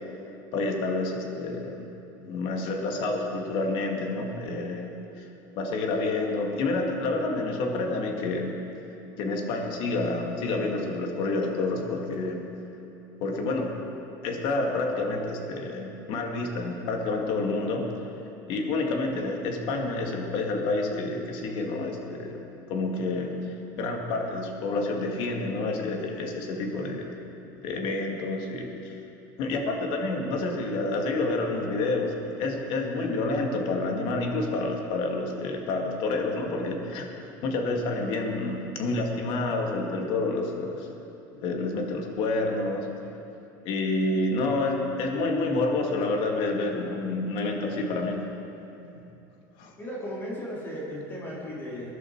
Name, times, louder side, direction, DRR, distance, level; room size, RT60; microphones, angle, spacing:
voice 1, 0.5-1.9 2.2-5.3 5.6-8.5 9.2-12.5 13.2-13.8 14.2-17.9 18.5-22.4 22.7-27.2 27.6-29.0 29.4-40.9 41.3-42.9 43.6-48.3 49.6-49.7 51.4-51.5, left 2 dB, 60° left, 2 dB, 2.2 m, -29 dB
voice 2, 49.8-51.9, equal, 20° left, -5 dB, 3.2 m, -36 dB
21.5 x 11.0 x 4.7 m, 2.9 s
cardioid pair, 140°, 10 cm